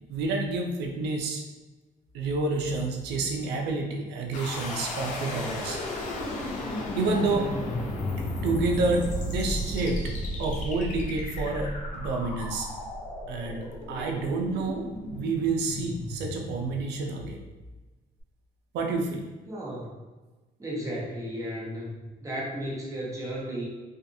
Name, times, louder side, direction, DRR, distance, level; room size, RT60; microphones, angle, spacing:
voice 1, 0.1-1.4 2.1-5.8 7.0-7.5 8.3-10.1 10.4-12.7 13.3-17.4 18.7-19.3, right 3 dB, 80° right, 2 dB, 0.5 m, -29 dB
sound 1, 4.3-17.3, left 1 dB, 45° left, 0.6 m, -34 dB
voice 2, 19.5-20.0 20.6-23.7, equal, 20° right, -5 dB, 0.9 m, -34 dB
2.5 x 2.4 x 2.6 m, 1.2 s
cardioid pair, 110°, 17 cm